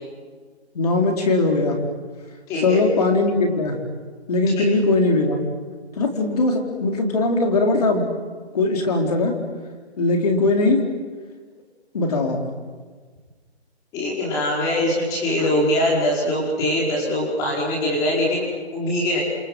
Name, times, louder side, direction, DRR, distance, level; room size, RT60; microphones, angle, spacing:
voice 1, 0.7-1.8 2.6-3.8 4.3-5.4 6.0-8.0 8.5-9.3 10.0-10.8 11.9-12.4 15.4-15.5, left 2 dB, 35° left, 2 dB, 4.0 m, -20 dB
voice 2, 2.5-2.8 4.6-4.7 13.9-19.2, left 1 dB, 10° left, -4 dB, 5.1 m, -22 dB
28.0 x 25.5 x 7.8 m, 1.5 s
hypercardioid pair, 170°, 33 cm